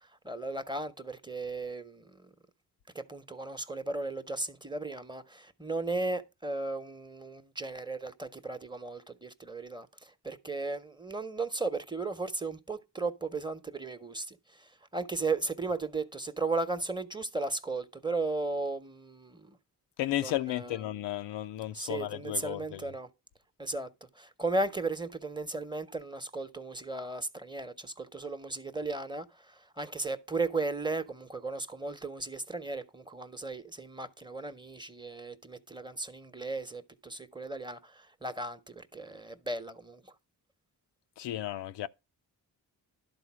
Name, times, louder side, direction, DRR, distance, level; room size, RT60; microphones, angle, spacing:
voice 1, 0.2-2.3 2.9-19.6 20.2-20.8 21.7-23.1 23.6-40.0, right 3 dB, 10° right, 0.9 m, -36 dB
voice 2, 20.0-22.9 41.2-41.9, left 14 dB, 85° left, 0.5 m, -34 dB
11.5 x 3.9 x 6.1 m
cardioid pair, 60°, 41 cm